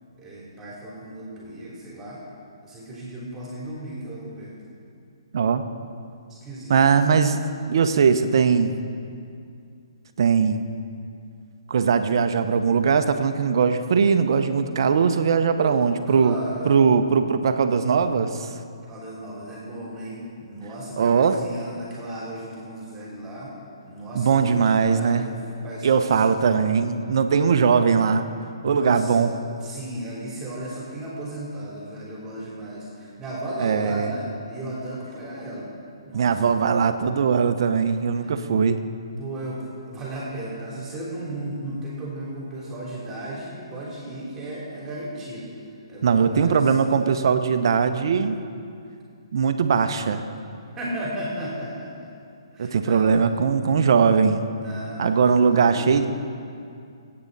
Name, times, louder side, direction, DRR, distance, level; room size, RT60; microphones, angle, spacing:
voice 1, 0.2-2.2 2.6-4.5 6.3-7.0 15.6-16.7 18.9-23.5 23.9-26.6 28.6-29.3 29.6-35.7 36.0-36.9 38.2-38.3 39.2-45.5 45.9-46.7 50.7-52.1 52.5-53.1 54.5-56.1, right 1 dB, 15° right, -6 dB, 3.3 m, -35 dB
voice 2, 6.7-7.4 7.7-8.7 10.2-10.7 11.7-16.4 16.6-18.5 21.0-21.4 24.1-25.3 25.8-28.3 28.6-29.3 33.6-34.1 36.1-38.8 46.0-48.4 49.3-50.2 52.6-54.5 55.0-56.1, right 6 dB, 60° right, 9 dB, 0.9 m, -20 dB
22.5 x 8.7 x 4.1 m, 2.4 s
hypercardioid pair, 135°, 3 cm